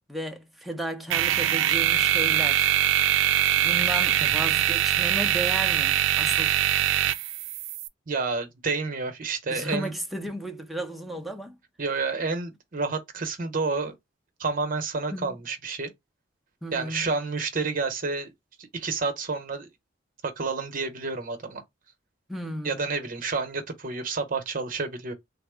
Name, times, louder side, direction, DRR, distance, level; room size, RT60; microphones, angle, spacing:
voice 1, 0.1-2.7 3.6-6.5 9.5-11.6 15.1-15.4 16.6-17.1 22.3-22.9, right 1 dB, ahead, 0.5 m, -34 dB
sound 1, 1.1-7.9, right 12 dB, 85° right, 0.3 m, -23 dB
voice 2, 8.1-9.9 11.8-13.9 14.4-15.9 16.7-18.3 18.6-19.7 20.2-21.6 22.6-25.1, right 4 dB, 45° right, 0.8 m, -29 dB
3.5 x 2.0 x 3.4 m
head